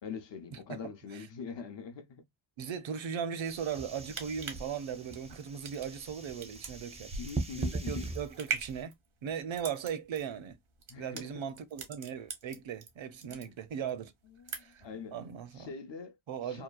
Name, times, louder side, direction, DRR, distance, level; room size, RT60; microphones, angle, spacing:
voice 1, 0.0-2.2 7.1-8.1 10.9-11.4 13.3-13.6 14.4-15.2 15.5-16.2 16.5-16.6, left 5 dB, 60° left, 0.6 m, -43 dB
voice 2, 0.5-1.3 2.6-7.2 7.5-8.9 9.2-10.6 11.0-14.1 14.6-14.8 15.1-15.7 16.3-16.6, right 7 dB, 65° right, 0.6 m, -38 dB
sound 1, 3.4-8.8, right 2 dB, 15° right, 0.4 m, -40 dB
sound 2, 4.0-12.9 13.2-13.9 14.2-14.9 15.3-15.4, right 6 dB, 85° right, 0.9 m, -41 dB
2.8 x 2.2 x 2.2 m
wide cardioid pair, 90°, 50 cm